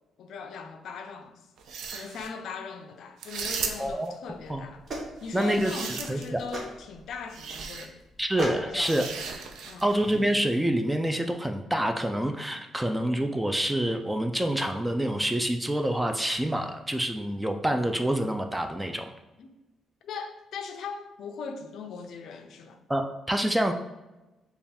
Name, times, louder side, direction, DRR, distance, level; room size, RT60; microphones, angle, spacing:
voice 1, 0.2-1.4 1.9-4.8 5.2-8.0 8.6-9.1 9.6-9.9 19.4-19.5 20.0-22.8, left 5 dB, 70° left, 0.4 m, -39 dB
sound 1, 1.6-2.3 3.2-4.1 5.2-6.4 7.3-7.9 8.8-9.9, right 6 dB, 75° right, 0.4 m, -36 dB
voice 2, 3.8-4.1 4.5-4.6 5.3-5.8 6.1-6.4 8.2-9.0 9.8-19.1 22.9-23.7, right 1 dB, 10° right, 0.3 m, -27 dB
sound 2, 4.3-10.4, right 2 dB, 50° right, 0.9 m, -39 dB
3.3 x 2.3 x 4.2 m
cardioid pair, 90°, 0 cm